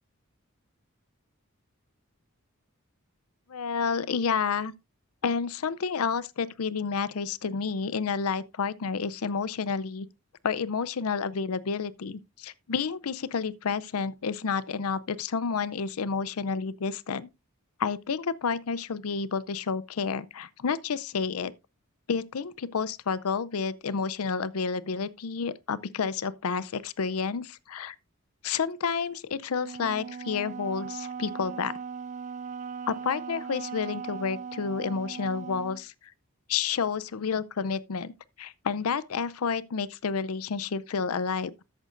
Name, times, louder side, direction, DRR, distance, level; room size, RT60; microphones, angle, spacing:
voice 1, 3.5-4.7 5.2-10.1 10.4-17.3 17.8-21.5 22.1-28.0 28.4-31.7 32.9-35.9 36.5-38.1 38.4-41.6, left 5 dB, 80° left, 0.5 m, -30 dB
Wind instrument woodwind instrument, 29.6-35.8, right 6 dB, 35° right, 0.4 m, -38 dB
13.0 x 8.9 x 2.5 m
head